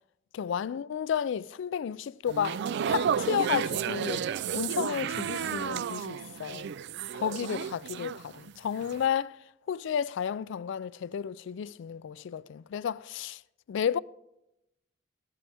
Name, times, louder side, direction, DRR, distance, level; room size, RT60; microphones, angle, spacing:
voice 1, 0.3-4.3 4.5-6.7 7.1-9.4 9.7-13.4 13.7-14.0, left 8 dB, 65° left, 0.3 m, -32 dB
sound 1, 2.3-8.5 8.8-9.1, right 8 dB, 60° right, 0.3 m, -32 dB
13.5 x 9.8 x 3.4 m
head